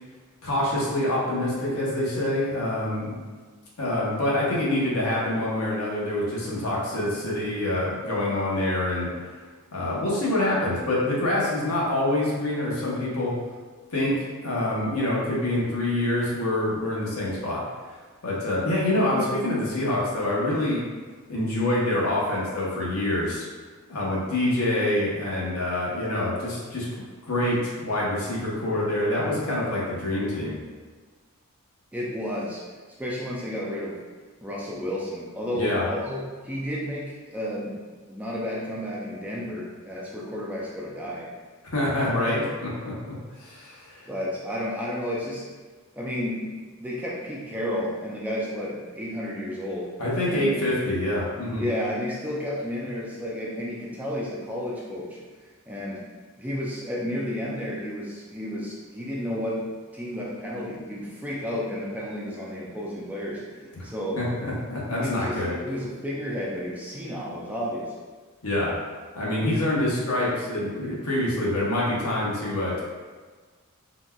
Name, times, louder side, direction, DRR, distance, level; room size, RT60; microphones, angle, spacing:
voice 1, 0.4-3.1 3.8-9.1 9.7-13.3 13.9-17.6 18.2-20.9 21.3-23.5 23.9-26.9 27.3-30.5 35.5-35.8 41.7-43.1 43.4-44.1 50.0-51.6 64.2-65.5 68.4-68.7 69.1-72.8, left 1 dB, 75° left, -5 dB, 0.9 m, -26 dB
voice 2, 31.9-32.6 33.0-34.0 34.4-37.8 38.1-41.3 44.1-45.4 45.9-49.9 50.2-50.6 51.6-56.0 56.4-59.6 59.9-64.2 65.0-67.9, equal, 5° right, -5 dB, 0.3 m, -32 dB
3.9 x 2.2 x 2.2 m, 1.4 s
head